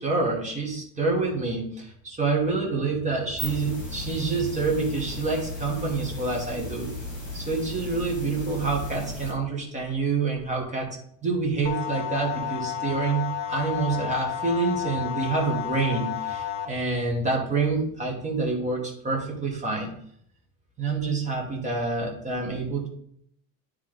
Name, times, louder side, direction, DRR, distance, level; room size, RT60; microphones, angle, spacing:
voice 1, 0.0-6.9 7.3-10.9 11.2-13.2 13.5-19.9 20.8-22.9, right 3 dB, 15° right, 0 dB, 1.3 m, -27 dB
sound 1, 3.1-9.3, left 1 dB, 20° left, 2.3 m, -36 dB
sound 2, 11.6-16.6, left 10 dB, 35° left, 0.6 m, -31 dB
9.4 x 3.3 x 3.8 m, 0.69 s
cardioid pair, 165°, 43 cm